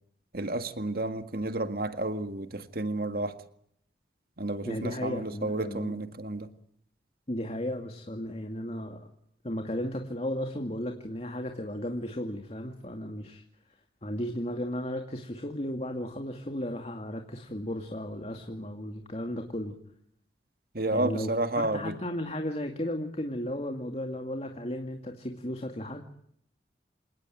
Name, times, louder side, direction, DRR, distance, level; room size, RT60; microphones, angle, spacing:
voice 1, 0.3-3.4 4.4-6.5 20.7-22.0, right 2 dB, 55° right, 1.9 m, -31 dB
voice 2, 4.7-5.9 7.3-9.1 9.4-13.4 14.0-19.8 20.9-26.0, left 1 dB, 35° left, 2.3 m, -35 dB
28.5 x 18.0 x 9.1 m
head